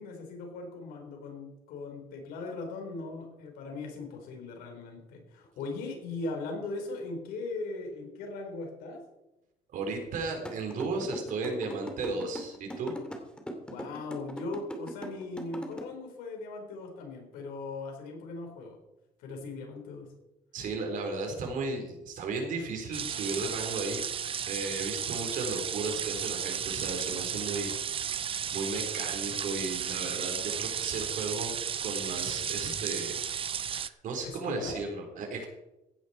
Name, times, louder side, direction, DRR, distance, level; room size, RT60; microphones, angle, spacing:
voice 1, 0.0-9.0 13.7-18.8 19.2-20.1 34.2-34.8, left 3 dB, 85° left, 3 dB, 4.4 m, -39 dB
voice 2, 9.7-12.9 20.5-27.7 28.5-31.5 31.8-33.2 33.7-35.5, right 3 dB, 60° right, 3 dB, 4.0 m, -35 dB
sound 1, 10.5-15.8, equal, 5° left, 2.7 m, -39 dB
sound 2, 22.9-33.9, right 8 dB, 35° right, 0.6 m, -34 dB
16.0 x 10.5 x 4.4 m, 0.94 s
cardioid pair, 105°, 15 cm